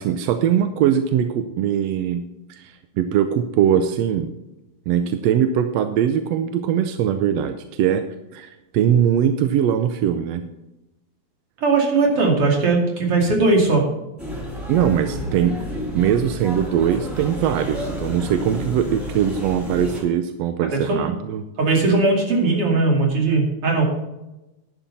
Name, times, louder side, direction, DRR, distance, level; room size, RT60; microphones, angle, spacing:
voice 1, 0.0-2.2 2.5-4.3 4.9-8.0 8.3-10.4 14.7-15.6 15.9-21.4, right 9 dB, 75° right, 8 dB, 1.6 m, -21 dB
voice 2, 11.6-13.9 20.6-21.1 21.6-23.8, right 3 dB, 50° right, 0 dB, 3.3 m, -19 dB
sound 1, 14.2-20.0, equal, ahead, 3.7 m, -31 dB
11.0 x 9.1 x 4.1 m, 0.97 s
omnidirectional pair, 3.4 m